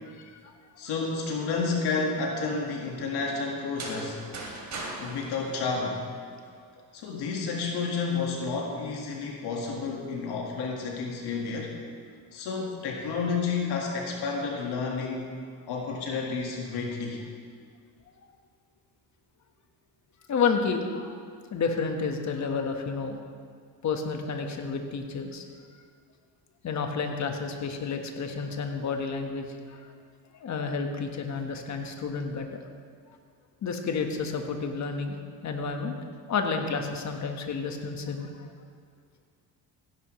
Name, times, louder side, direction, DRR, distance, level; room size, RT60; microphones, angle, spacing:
voice 1, 0.2-0.5 20.3-21.2 21.5-23.2 23.8-25.4 26.6-29.9 30.3-32.5 33.6-35.1 35.4-35.9 36.3-38.5, left 5 dB, 40° left, 4 dB, 1.4 m, -30 dB
voice 2, 0.8-4.2 5.0-6.0 6.9-11.7 12.3-15.3 15.7-17.2, left 4 dB, 70° left, 0 dB, 1.8 m, -30 dB
sound 1, 3.6-6.5, right 2 dB, 40° right, 2.9 m, -39 dB
16.0 x 10.5 x 3.2 m, 2.1 s
cardioid pair, 105°, 41 cm